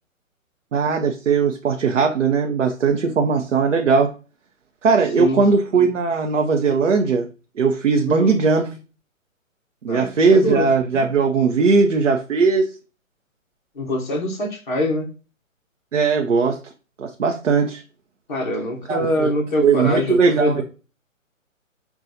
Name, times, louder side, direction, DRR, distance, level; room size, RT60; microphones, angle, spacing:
voice 1, 0.7-4.1 4.8-7.3 7.6-8.7 9.8-12.7 15.9-16.6 17.0-17.8 18.9-19.3 19.6-20.6, right 5 dB, 65° right, 3 dB, 0.6 m, -19 dB
voice 2, 8.1-8.4 9.9-10.7 13.8-15.1 18.3-20.6, left 1 dB, 40° left, 1 dB, 0.8 m, -24 dB
5.7 x 2.3 x 2.6 m, 0.34 s
figure-of-eight pair, 135°, 40 cm